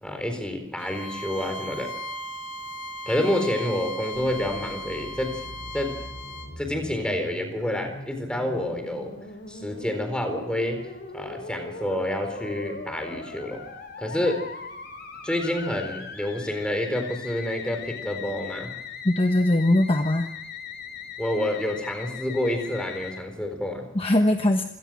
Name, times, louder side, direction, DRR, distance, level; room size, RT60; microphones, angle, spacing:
voice 1, 0.0-1.9 3.1-5.3 5.7-5.9 6.6-9.2 9.5-10.8 11.1-13.6 14.0-14.4 15.2-18.7 21.2-23.9, left 1 dB, 5° left, 5 dB, 4.1 m, -28 dB
Bowed string instrument, 0.8-6.5, equal, 75° left, 2.9 m, -37 dB
Musical instrument, 4.1-23.2, left 4 dB, 50° left, 2.9 m, -40 dB
voice 2, 19.0-20.3 23.9-24.6, left 1 dB, 25° left, 5 dB, 1.1 m, -21 dB
27.0 x 18.0 x 6.3 m, 0.89 s
head